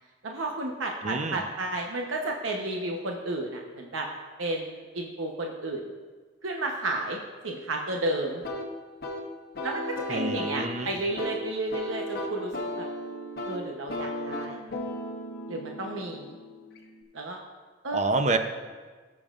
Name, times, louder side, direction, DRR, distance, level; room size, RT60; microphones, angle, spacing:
voice 1, 0.2-4.1 4.4-5.8 6.4-8.4 9.6-12.9 13.5-14.6 15.5-16.4 17.1-17.4 17.8-18.0, right 2 dB, 85° right, 1 dB, 0.9 m, -32 dB
voice 2, 1.0-1.4 10.1-10.9 17.9-18.4, right 3 dB, 35° right, 7 dB, 0.6 m, -27 dB
sound 1, 8.4-17.0, left 1 dB, 55° left, 1.0 m, -36 dB
19.0 x 7.1 x 2.5 m, 1.4 s
head